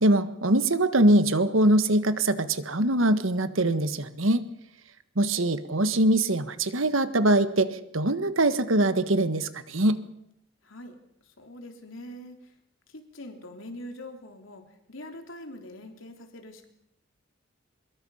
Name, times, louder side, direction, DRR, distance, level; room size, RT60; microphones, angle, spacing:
voice 1, 0.0-4.4 5.1-10.0, right 1 dB, 85° right, 11 dB, 1.5 m, -23 dB
voice 2, 10.6-11.0 11.2-12.5 12.9-16.7, left 1 dB, 85° left, 4 dB, 3.5 m, -43 dB
24.5 x 22.0 x 5.7 m, 0.80 s
head